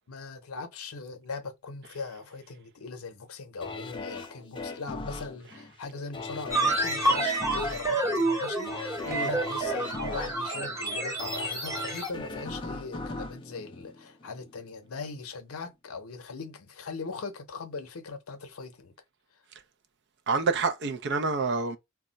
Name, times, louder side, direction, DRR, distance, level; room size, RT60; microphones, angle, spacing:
voice 1, 0.1-18.9, left 4 dB, 85° left, 0.6 m, -40 dB
sound 1, 3.6-14.6 15.0-15.1, left 3 dB, 25° left, 0.4 m, -39 dB
sound 2, 6.5-12.1, right 2 dB, 15° right, 0.9 m, -29 dB
voice 2, 20.3-21.8, right 4 dB, 55° right, 0.5 m, -27 dB
2.3 x 2.0 x 3.8 m
head